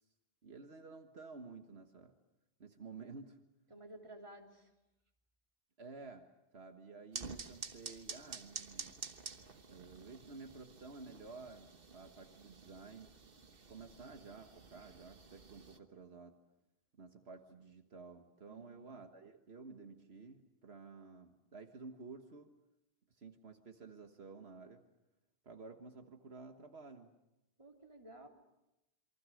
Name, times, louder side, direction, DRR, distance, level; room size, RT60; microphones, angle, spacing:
voice 1, 0.4-2.1 2.6-3.4 5.8-6.3 6.5-9.0 9.7-13.1 13.7-16.4 17.0-22.5 23.2-24.8 25.4-27.1, right 4 dB, 75° right, 5 dB, 1.7 m, -52 dB
voice 2, 3.7-4.7 18.5-18.6 27.6-28.3, right 1 dB, 30° right, 1 dB, 3.3 m, -53 dB
sound 1, 7.1-15.8, right 4 dB, 60° right, 1.5 m, -50 dB
28.0 x 23.5 x 6.4 m, 0.92 s
omnidirectional pair, 1.1 m